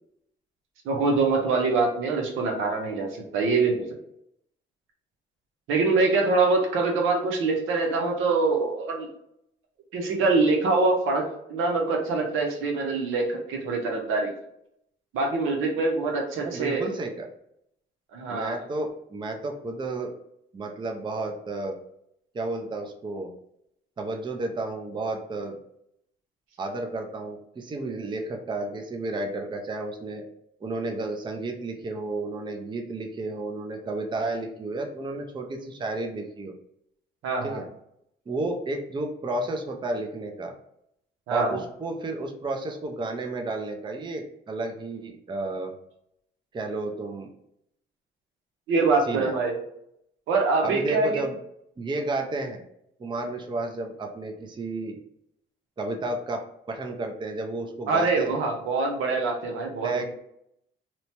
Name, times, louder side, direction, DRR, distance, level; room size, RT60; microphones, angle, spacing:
voice 1, 0.8-3.8 5.7-9.1 9.9-11.2 11.5-14.3 15.1-16.9 18.1-18.6 37.2-37.6 41.3-41.6 48.7-49.6 50.3-51.1 57.9-60.1, right 3 dB, 85° right, 1 dB, 0.7 m, -24 dB
voice 2, 16.4-17.3 18.3-20.1 20.5-21.8 22.3-23.3 24.0-25.6 26.6-30.2 30.6-36.5 37.4-37.6 38.3-40.5 41.3-45.7 46.5-47.3 49.1-49.3 50.6-51.4 51.8-52.6 53.0-55.0 55.8-58.4 59.8-60.1, right 2 dB, 25° right, 3 dB, 0.4 m, -32 dB
2.9 x 2.1 x 2.8 m, 0.75 s
cardioid pair, 90°, 20 cm